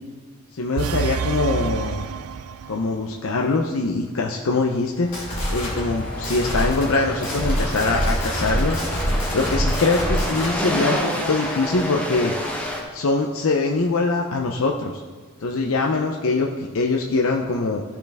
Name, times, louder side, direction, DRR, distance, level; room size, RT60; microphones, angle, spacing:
voice 1, 0.5-2.1 2.7-5.1 5.5-12.4 12.9-15.0 15.4-17.8, left 3 dB, 70° left, 1 dB, 0.6 m, -23 dB
sound 1, 0.8-3.0, right 6 dB, 85° right, 0.4 m, -28 dB
sound 2, 4.9-10.6, equal, 35° left, 2.9 m, -26 dB
sound 3, 5.3-12.8, equal, 5° left, 1.2 m, -29 dB
15.5 x 5.8 x 3.5 m, 1.5 s
head